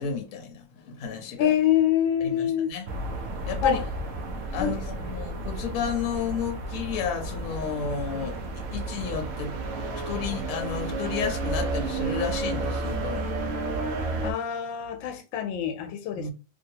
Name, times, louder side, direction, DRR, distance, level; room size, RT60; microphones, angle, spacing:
voice 1, 0.0-1.5 2.2-2.9 3.4-3.8 4.5-8.4 8.7-9.6 10.1-13.4 16.1-16.3, left 6 dB, 55° left, 1.0 m, -32 dB
voice 2, 1.4-2.7 3.6-3.8 4.6-4.7 14.2-16.3, left 9 dB, 90° left, 1.4 m, -25 dB
sound 1, 2.9-14.3, right 2 dB, 90° right, 0.6 m, -31 dB
3.0 x 2.8 x 2.7 m
omnidirectional pair, 2.0 m